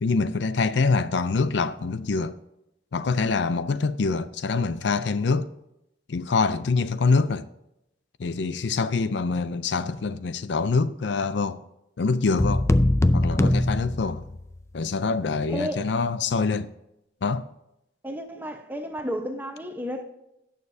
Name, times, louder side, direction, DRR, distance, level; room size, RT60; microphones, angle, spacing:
voice 1, 0.0-2.4 2.9-5.5 6.1-7.5 8.2-11.6 12.0-12.7 13.1-14.2 14.7-16.7 17.2-17.4, left 4 dB, 75° left, 0.5 m, -25 dB
sound 1, 12.4-14.6, left 1 dB, 15° left, 0.3 m, -22 dB
voice 2, 18.0-20.0, equal, 10° right, 0.9 m, -32 dB
17.5 x 6.7 x 2.7 m
head